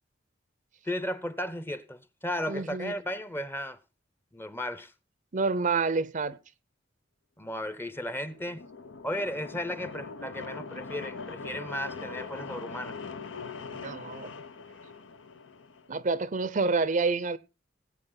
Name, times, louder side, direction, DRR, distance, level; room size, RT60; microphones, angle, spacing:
voice 1, 0.8-3.8 4.3-4.9 7.4-8.6 9.0-13.0, left 1 dB, 10° left, 0.7 m, -35 dB
voice 2, 2.5-2.9 5.3-6.4 13.7-14.3 15.9-17.4, right 4 dB, 40° right, 0.6 m, -28 dB
sound 1, 8.1-15.9, left 4 dB, 85° left, 1.0 m, -42 dB
17.5 x 8.5 x 3.8 m
head